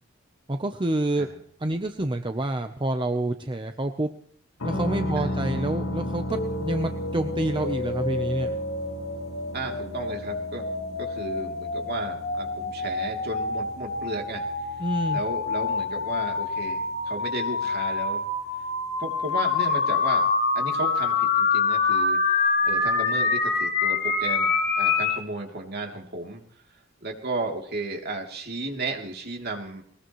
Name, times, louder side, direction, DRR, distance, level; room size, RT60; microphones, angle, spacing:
voice 1, 0.5-1.3 1.6-4.1 4.6-8.6 14.8-15.2, right 1 dB, 25° right, 7 dB, 0.8 m, -28 dB
sound 1, 4.6-18.3, left 1 dB, 80° left, 1.9 m, -37 dB
Bass guitar, 4.7-11.0, left 1 dB, 10° left, 1.1 m, -37 dB
voice 2, 5.1-5.5 9.5-10.7 11.0-14.4 15.1-18.2 19.0-20.3 20.5-26.4 27.0-29.8, right 2 dB, 50° right, 2 dB, 3.1 m, -34 dB
sound 2, 6.3-25.2, left 4 dB, 55° left, 3.0 m, -26 dB
21.0 x 20.0 x 3.2 m, 0.62 s
head